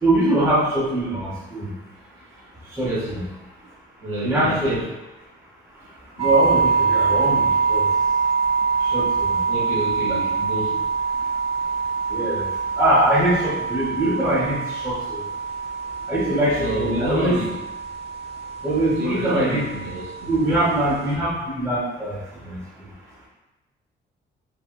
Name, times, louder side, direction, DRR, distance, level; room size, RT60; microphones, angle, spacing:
voice 1, 0.0-1.7 2.8-2.9 4.2-4.7 6.2-7.9 8.8-9.4 10.1-10.2 12.1-12.4 12.8-15.2 16.1-17.4 18.6-19.6 20.3-22.6, right 1 dB, 15° right, -7 dB, 0.8 m, -22 dB
voice 2, 2.8-3.2 4.0-4.9 9.5-10.8 16.6-17.6 18.8-20.3, right 1 dB, 85° right, -6 dB, 1.2 m, -28 dB
sound 1, 6.2-21.2, right 5 dB, 30° right, 0.4 m, -25 dB
3.4 x 2.1 x 2.4 m, 1.0 s
cardioid pair, 90°, 20 cm